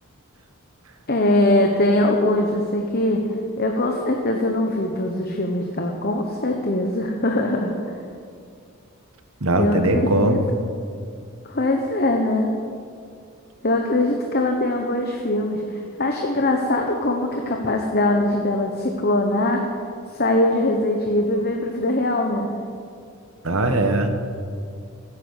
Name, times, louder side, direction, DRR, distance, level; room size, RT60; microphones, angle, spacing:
voice 1, 1.1-3.2 3.6-7.7 9.6-10.4 11.4-12.6 13.6-19.7 20.1-22.5, left 1 dB, 45° left, 2 dB, 1.1 m, -22 dB
voice 2, 9.4-10.4 23.4-24.3, right 1 dB, 70° right, 6 dB, 1.4 m, -20 dB
14.5 x 9.6 x 8.3 m, 2.4 s
head